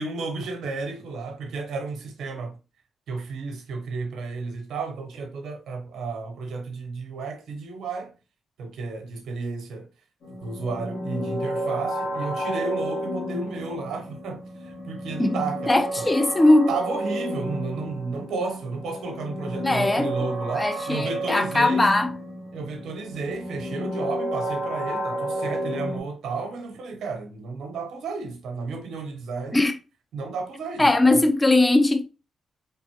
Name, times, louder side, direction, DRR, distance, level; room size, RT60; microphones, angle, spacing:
voice 1, 0.0-2.6 3.1-8.1 8.6-9.9 10.4-16.1 16.7-21.9 22.5-29.7 30.1-31.2, right 4 dB, 75° right, 0.9 m, -32 dB
sound 1, 10.2-26.0, equal, 75° left, 2.2 m, -31 dB
voice 2, 15.7-16.7 19.6-22.1 29.5-29.7 30.8-32.0, left 2 dB, 25° left, 0.7 m, -20 dB
4.2 x 3.4 x 2.8 m
hypercardioid pair, 40°, 0 cm